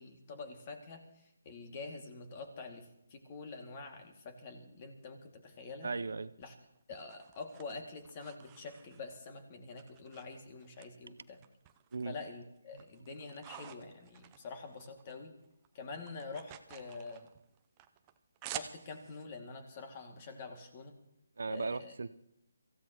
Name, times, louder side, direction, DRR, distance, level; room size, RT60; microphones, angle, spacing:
voice 1, 0.0-5.9 6.4-6.5 6.9-11.4 12.1-15.4 15.7-17.3 18.5-20.9 21.5-21.9, left 4 dB, 30° left, 4 dB, 2.3 m, -46 dB
voice 2, 5.8-6.3 11.1-11.2 11.9-12.2 12.7-12.8 21.4-22.1, right 4 dB, 70° right, 13 dB, 0.7 m, -37 dB
sound 1, 6.4-9.3 9.8-10.9 11.2-12.2 12.6-15.2 15.4-19.2, right 12 dB, 20° right, 0.6 m, -50 dB
24.5 x 15.5 x 3.0 m, 0.78 s
hypercardioid pair, 160°, 0 cm